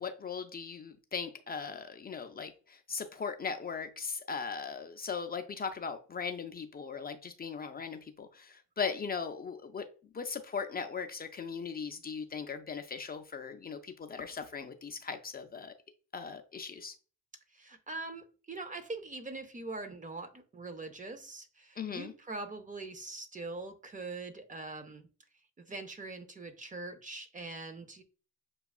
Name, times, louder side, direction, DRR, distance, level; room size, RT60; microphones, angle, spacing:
voice 1, 0.0-9.8 10.1-15.7 16.1-16.9 21.8-22.1, left 5 dB, 30° left, 0.5 m, -38 dB
voice 2, 17.5-25.1 25.6-28.0, right 3 dB, 25° right, 0.6 m, -43 dB
6.8 x 2.3 x 2.3 m
cardioid pair, 90°, 30 cm